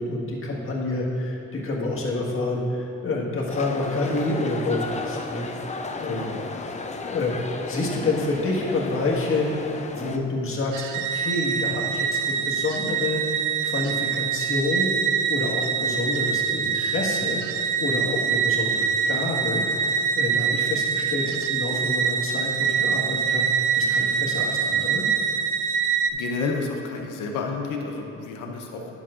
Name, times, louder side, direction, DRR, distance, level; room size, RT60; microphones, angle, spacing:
voice 1, 0.0-6.3 7.1-10.8 11.1-25.1, left 2 dB, 45° left, -3 dB, 1.6 m, -28 dB
sound 1, 3.5-10.2, left 3 dB, 25° left, 0.5 m, -34 dB
voice 2, 6.0-6.4 26.1-28.9, left 4 dB, 85° left, 2 dB, 0.8 m, -30 dB
sound 2, 10.7-26.1, right 6 dB, 85° right, 0.5 m, -25 dB
11.0 x 7.3 x 2.5 m, 2.7 s
cardioid pair, 90°, 30 cm